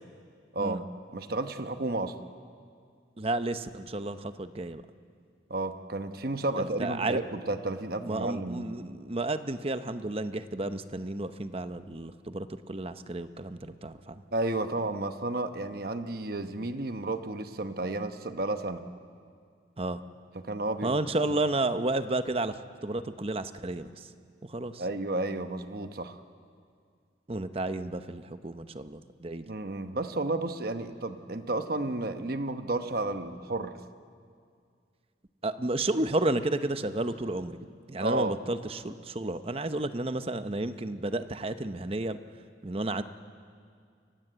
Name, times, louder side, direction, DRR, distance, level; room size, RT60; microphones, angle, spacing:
voice 1, 1.1-2.2 5.5-8.7 14.3-18.8 20.3-21.0 24.8-26.2 29.5-33.8 38.0-38.3, right 2 dB, 55° right, 8 dB, 1.0 m, -32 dB
voice 2, 3.2-4.8 6.5-7.2 8.0-14.2 19.8-20.0 20.8-24.1 24.5-24.8 27.3-29.5 35.4-37.6 37.9-42.2 42.6-43.0, right 2 dB, 30° right, 10 dB, 0.8 m, -32 dB
29.5 x 15.5 x 8.0 m, 2.2 s
head